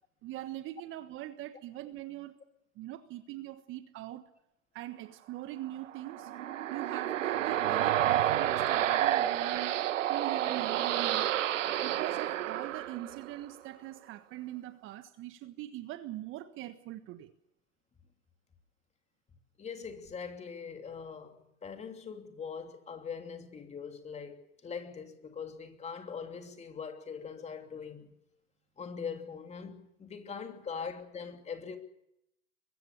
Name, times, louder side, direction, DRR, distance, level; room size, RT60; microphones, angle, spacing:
voice 1, 0.2-2.4 2.8-4.3 4.7-6.3 6.7-11.4 11.8-17.3, right 14 dB, 30° right, 1.4 m, -42 dB
sound 1, 5.9-13.5, right 12 dB, 65° right, 1.2 m, -30 dB
voice 2, 19.6-28.1 28.8-31.8, left 6 dB, 15° left, 2.9 m, -42 dB
23.5 x 21.0 x 7.0 m
hypercardioid pair, 110°, 41 cm